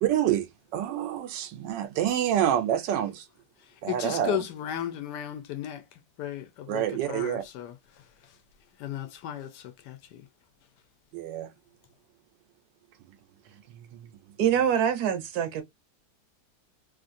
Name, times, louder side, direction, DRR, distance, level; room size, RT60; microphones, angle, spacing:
voice 1, 0.0-3.3 3.8-4.4 6.7-7.4 11.1-11.5 13.0-13.1 13.7-14.1, right 10 dB, 90° right, 1.3 m, -28 dB
voice 2, 3.6-8.3 8.8-10.3, left 11 dB, 75° left, 1.2 m, -36 dB
voice 3, 14.4-15.6, right 9 dB, 70° right, 1.0 m, -24 dB
3.1 x 2.5 x 2.5 m
omnidirectional pair, 1.9 m